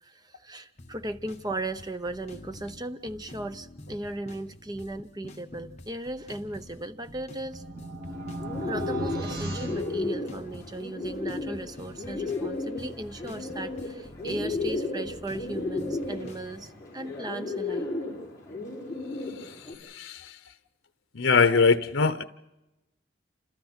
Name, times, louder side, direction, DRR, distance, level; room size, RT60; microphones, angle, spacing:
voice 1, 0.0-7.6 8.6-17.9, right 1 dB, 20° right, 10 dB, 0.8 m, -37 dB
sound 1, 0.8-16.7, left 1 dB, 35° left, 1.5 m, -47 dB
sound 2, 6.9-10.8, right 1 dB, 55° right, 2.1 m, -36 dB
Bird, 8.1-19.7, left 2 dB, 15° left, 5.9 m, -34 dB
voice 2, 19.9-20.3 21.1-22.2, left 4 dB, 80° left, 12 dB, 0.8 m, -22 dB
29.0 x 27.5 x 4.4 m, 0.99 s
head